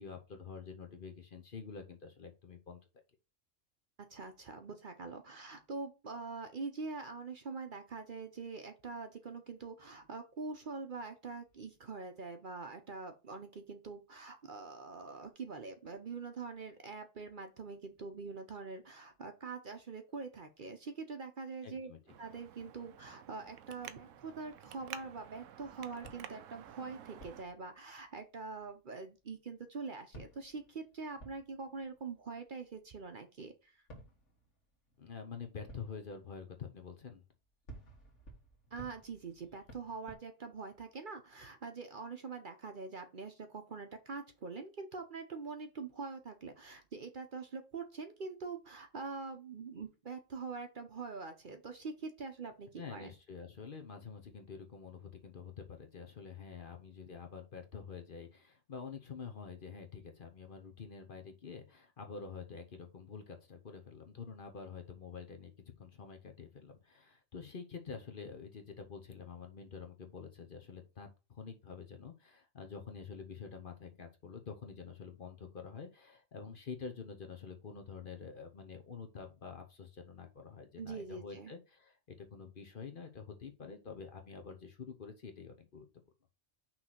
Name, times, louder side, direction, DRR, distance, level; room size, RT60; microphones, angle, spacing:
voice 1, 0.0-2.8 21.6-22.0 35.0-37.2 52.8-65.5 65.8-85.9, left 5 dB, 45° left, 5 dB, 0.9 m, -47 dB
voice 2, 4.1-21.9 22.2-33.7 38.7-53.1 80.8-81.5, right 4 dB, 45° right, 7 dB, 0.8 m, -44 dB
Traffic noise roadway noise, 22.1-27.4, right 10 dB, 80° right, 1.0 m, -51 dB
sound 1, 23.7-29.3 29.8-29.9 30.1-33.2 33.9-40.1, right 1 dB, 70° left, 2.1 m, -57 dB
6.0 x 3.2 x 5.7 m, 0.30 s
omnidirectional pair, 1.3 m